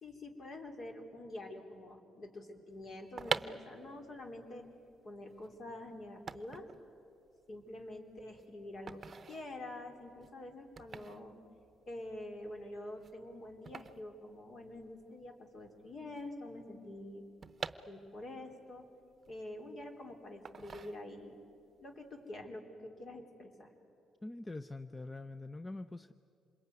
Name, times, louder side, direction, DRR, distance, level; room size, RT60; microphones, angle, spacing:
voice 1, 0.0-4.7 5.0-6.7 7.5-11.4 11.9-17.3 17.9-18.9 19.3-21.4 21.8-23.7, left 1 dB, 50° left, 4 dB, 3.7 m, -47 dB
sound 1, 2.9-15.0 15.3-15.4 15.6-18.4 18.9-19.9 20.4-21.4 21.8-22.1, right 5 dB, 40° right, 0.8 m, -45 dB
voice 2, 24.2-26.1, left 2 dB, 20° left, 12 dB, 0.6 m, -44 dB
27.0 x 21.5 x 9.5 m, 2.7 s
cardioid pair, 90°, 0 cm